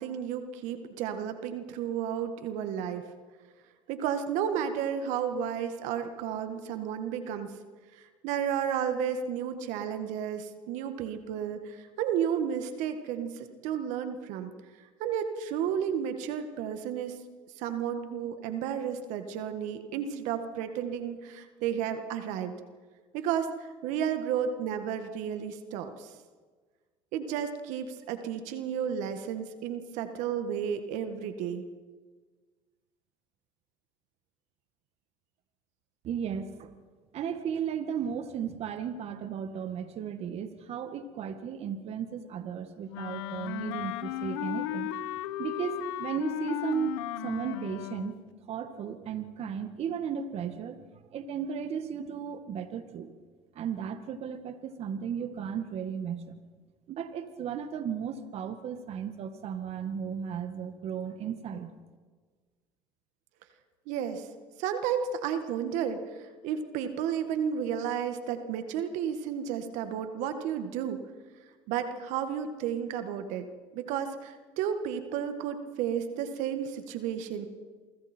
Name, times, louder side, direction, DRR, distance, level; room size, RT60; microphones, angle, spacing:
voice 1, 0.0-3.1 3.9-7.5 7.9-14.5 15.0-17.1 17.6-22.5 23.1-26.1 27.1-31.6 63.9-64.3 64.6-71.0 71.7-73.5 73.7-77.5, right 8 dB, 75° right, 8 dB, 1.8 m, -32 dB
voice 2, 36.0-36.7 37.1-44.9 45.4-48.2 48.5-50.8 51.1-53.1 53.5-56.4 56.9-61.7, right 7 dB, 55° right, 9 dB, 1.7 m, -35 dB
Wind instrument woodwind instrument, 42.9-48.2, left 14 dB, 90° left, 1.0 m, -35 dB
28.0 x 24.5 x 4.5 m, 1.5 s
supercardioid pair, 85°, 13 cm